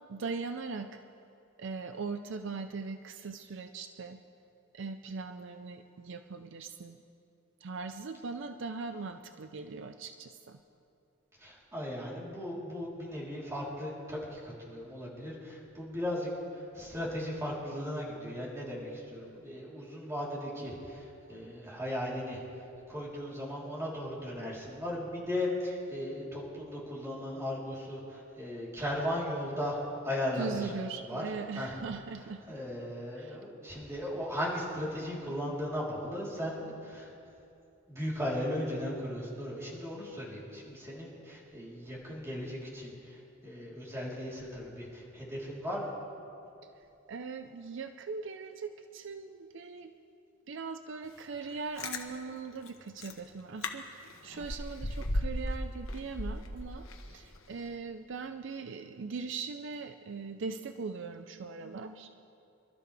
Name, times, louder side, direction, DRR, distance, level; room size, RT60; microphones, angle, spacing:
voice 1, 0.1-1.0 1.6-4.2 4.7-7.0 7.6-10.6 30.4-32.4 33.2-33.4 47.1-49.9 50.5-62.1, right 4 dB, 60° right, 8 dB, 0.5 m, -40 dB
voice 2, 11.4-22.4 22.9-30.7 31.0-31.2 31.5-31.8 32.5-37.1 37.9-45.9, left 1 dB, 15° right, -6 dB, 3.7 m, -37 dB
Chewing mastication, 51.5-52.0 52.7-52.8 53.0-53.2 53.6-53.7 54.0-55.6 55.9-57.1 57.5-57.6, left 1 dB, 85° left, 1.2 m, -35 dB
26.5 x 12.5 x 3.4 m, 2.7 s
head